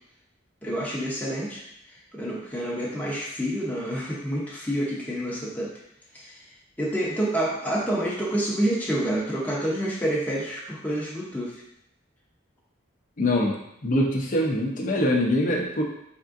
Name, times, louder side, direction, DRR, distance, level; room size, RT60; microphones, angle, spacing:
voice 1, 0.6-1.6 1.9-5.7 6.1-6.5 6.8-11.6, right 1 dB, 10° left, -6 dB, 0.7 m, -28 dB
voice 2, 13.2-13.6 13.8-15.8, left 1 dB, 40° left, -1 dB, 0.6 m, -23 dB
3.6 x 3.6 x 2.5 m, 0.78 s
head